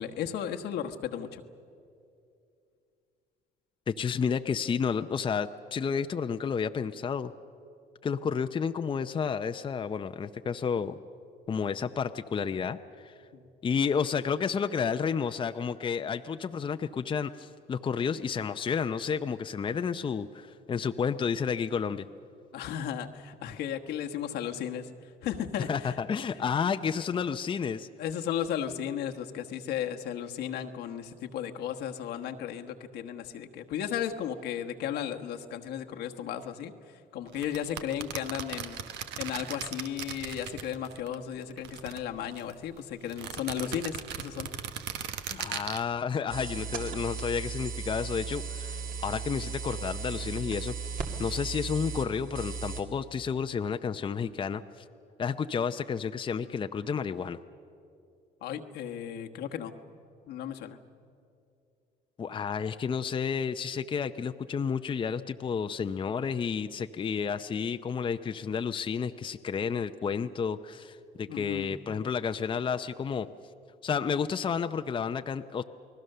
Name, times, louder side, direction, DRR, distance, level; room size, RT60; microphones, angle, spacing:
voice 1, 0.0-1.4 13.3-13.5 22.5-24.9 25.2-25.7 28.0-36.7 37.1-38.8 39.2-44.5 45.3-45.5 58.4-59.7 60.3-60.8 71.3-71.7, left 9 dB, 80° left, 4 dB, 1.3 m, -35 dB
voice 2, 3.9-7.3 8.0-10.9 11.5-13.1 13.6-22.1 25.7-27.9 45.3-54.8 55.2-57.4 62.2-73.3 73.8-75.6, left 6 dB, 30° left, 8 dB, 0.6 m, -31 dB
sound 1, 37.3-41.1 41.4-42.5 43.1-45.8, right 9 dB, 85° right, 1.2 m, -38 dB
sound 2, 46.3-52.8, right 5 dB, 55° right, 2.3 m, -36 dB
29.0 x 19.5 x 6.7 m, 2.5 s
cardioid pair, 110°, 17 cm